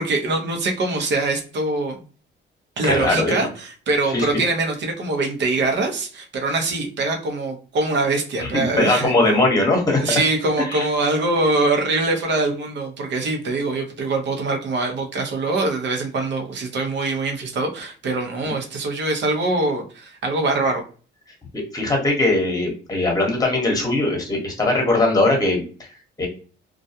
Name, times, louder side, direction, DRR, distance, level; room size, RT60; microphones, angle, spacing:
voice 1, 0.0-2.0 2.8-9.1 10.0-20.8, right 2 dB, 65° right, 3 dB, 0.8 m, -23 dB
voice 2, 2.8-3.4 4.1-4.4 8.4-10.0 10.6-10.9 18.4-18.5 21.5-25.6 26.2-26.3, left 2 dB, 20° left, 1 dB, 1.0 m, -20 dB
2.4 x 2.2 x 2.7 m, 0.38 s
cardioid pair, 90°, 20 cm